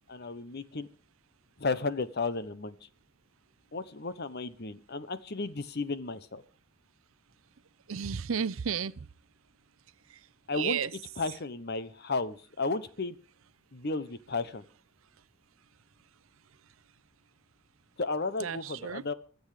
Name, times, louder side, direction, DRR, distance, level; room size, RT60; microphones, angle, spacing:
voice 1, 0.1-0.9 1.6-2.9 3.7-6.4 10.5-10.8 11.2-13.2 13.7-14.6 18.0-19.1, left 3 dB, 50° left, 1.0 m, -33 dB
voice 2, 7.9-8.9 10.5-10.9 18.4-19.0, right 7 dB, 70° right, 0.6 m, -32 dB
24.0 x 8.1 x 5.0 m
head